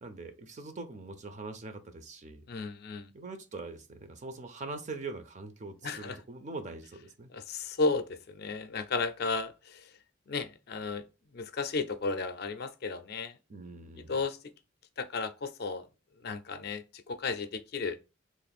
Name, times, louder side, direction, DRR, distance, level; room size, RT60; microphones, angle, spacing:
voice 1, 0.0-2.4 3.1-7.3 13.5-14.2, right 3 dB, 35° right, 0.5 m, -42 dB
voice 2, 2.5-3.1 5.8-6.2 7.3-9.9 10.3-11.0 11.3-13.3 14.1-14.4 15.0-15.8 16.2-18.0, left 4 dB, 50° left, 0.4 m, -34 dB
3.1 x 2.4 x 4.1 m
head